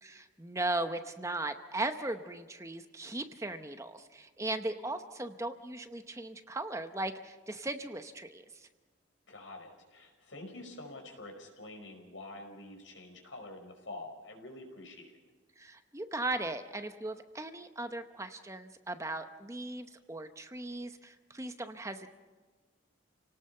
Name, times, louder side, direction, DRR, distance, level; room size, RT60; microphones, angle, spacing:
voice 1, 0.0-8.7 15.6-22.1, right 2 dB, 15° right, 8 dB, 0.8 m, -38 dB
voice 2, 9.3-15.1, left 2 dB, 80° left, 3 dB, 5.1 m, -47 dB
29.5 x 18.0 x 5.6 m, 1.4 s
head